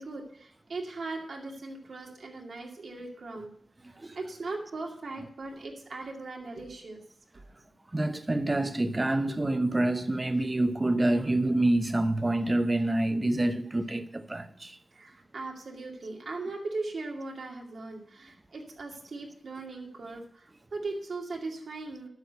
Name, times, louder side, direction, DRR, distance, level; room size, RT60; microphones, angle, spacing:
voice 1, 0.0-3.5 4.1-7.0 14.9-22.1, right 3 dB, 70° right, 2.3 m, -39 dB
voice 2, 7.9-14.8, right 1 dB, 25° right, 0.9 m, -27 dB
9.6 x 6.5 x 8.0 m
wide cardioid pair, 85°, 0 cm